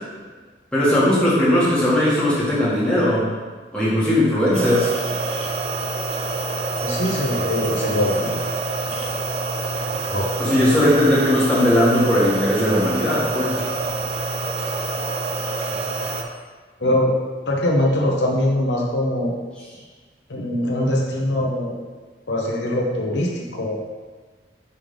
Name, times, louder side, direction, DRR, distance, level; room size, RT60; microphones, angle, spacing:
voice 1, 0.7-3.2 3.7-4.9 10.4-13.6, left 1 dB, 5° left, -9 dB, 1.7 m, -18 dB
sound 1, 4.5-16.2, right 3 dB, 35° right, 0.5 m, -26 dB
voice 2, 6.8-8.4 10.1-10.3 15.7-15.9 16.8-17.1 17.5-19.3 20.3-21.7 22.3-23.9, left 1 dB, 75° left, -1 dB, 0.9 m, -22 dB
5.5 x 3.6 x 5.1 m, 1.4 s
head